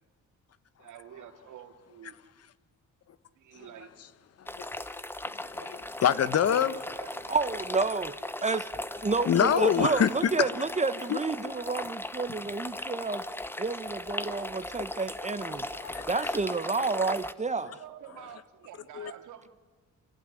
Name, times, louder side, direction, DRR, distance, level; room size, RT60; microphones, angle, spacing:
voice 1, 0.8-2.2 3.3-3.9 6.9-7.5 17.1-19.5, right 10 dB, 80° right, 2.5 m, -48 dB
sound 1, 4.5-17.3, left 1 dB, 5° left, 1.0 m, -37 dB
voice 2, 5.3-7.0 9.3-10.1 10.4-10.5 11.1-11.2 14.3-14.4 15.8-16.3 19.0-19.1, left 8 dB, 55° left, 1.3 m, -26 dB
voice 3, 7.3-8.1 8.4-8.7 9.0-13.2 13.6-17.7, right 4 dB, 25° right, 1.3 m, -30 dB
28.0 x 17.5 x 9.9 m
cardioid pair, 90°, 30 cm